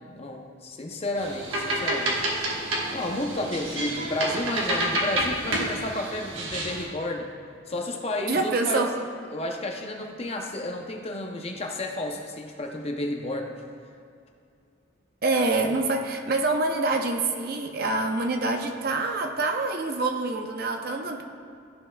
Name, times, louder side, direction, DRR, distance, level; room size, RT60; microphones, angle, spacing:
voice 1, 0.1-2.6 2.9-7.3 7.7-8.9 9.3-13.6, left 1 dB, 30° left, 2 dB, 0.6 m, -32 dB
sound 1, 1.2-6.9, right 1 dB, 90° right, 1.3 m, -29 dB
voice 2, 8.3-8.9 15.2-21.2, right 3 dB, 50° right, 3 dB, 0.5 m, -26 dB
13.0 x 5.5 x 2.2 m, 2.4 s
head